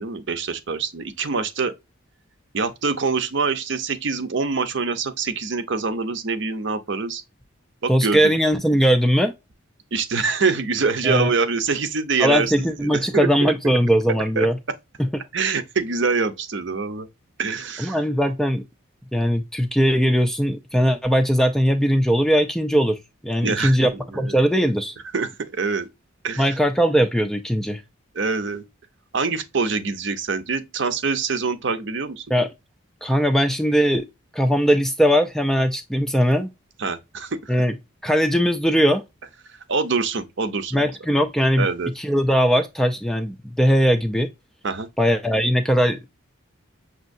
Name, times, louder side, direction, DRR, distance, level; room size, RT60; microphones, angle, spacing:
voice 1, 0.0-1.7 2.5-7.2 7.8-8.3 9.9-13.5 14.4-14.5 15.3-17.1 17.4-18.0 23.4-23.9 24.1-24.4 25.1-25.9 26.2-26.5 28.1-28.6 29.1-32.2 36.8-37.5 39.7-40.8 41.6-41.9 44.6-44.9, right 4 dB, 55° right, 0.6 m, -25 dB
voice 2, 7.9-9.3 11.0-11.3 12.2-14.6 15.0-15.1 17.8-18.6 19.1-23.0 23.2-24.9 26.4-27.8 32.3-32.5 33.0-34.1 34.3-36.5 37.5-37.8 38.0-39.0 40.7-41.7 42.0-44.3 45.0-46.0, equal, ahead, 0.4 m, -20 dB
6.2 x 2.7 x 2.6 m
head